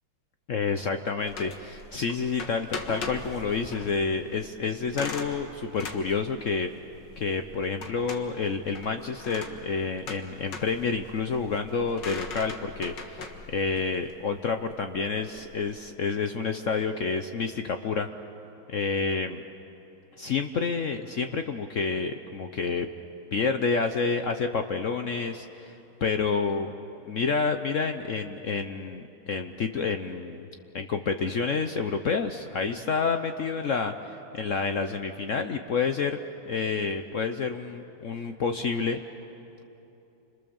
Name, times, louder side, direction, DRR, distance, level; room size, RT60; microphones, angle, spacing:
voice 1, 0.5-6.7 7.2-18.1 18.7-19.4 20.2-22.9 23.3-26.7 27.1-30.4 30.7-36.2 36.5-39.0, left 5 dB, 75° left, 7 dB, 0.7 m, -29 dB
sound 1, 1.2-15.7, left 3 dB, 55° left, 2.2 m, -41 dB
30.0 x 26.0 x 7.1 m, 3.0 s
omnidirectional pair, 2.4 m